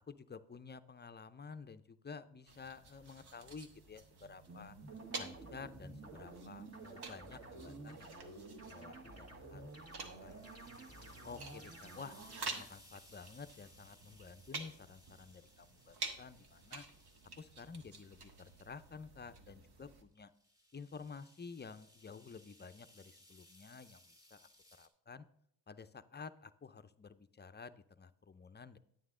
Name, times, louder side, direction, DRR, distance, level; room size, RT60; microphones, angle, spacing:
voice 1, 0.1-4.8 5.1-8.3 8.6-9.7 10.2-10.6 11.2-16.8 17.4-20.3 20.7-24.5 24.8-25.3 25.7-28.8, left 5 dB, 25° left, 13 dB, 0.5 m, -52 dB
sound 1, 2.5-20.0, right 3 dB, 65° right, 1.4 m, -50 dB
sound 2, 4.5-12.6, right 2 dB, 35° right, 1.8 m, -51 dB
sound 3, 9.4-19.0 20.1-24.9, left 1 dB, 10° right, 2.0 m, -64 dB
9.5 x 9.0 x 3.7 m, 0.72 s
cardioid pair, 75°, 42 cm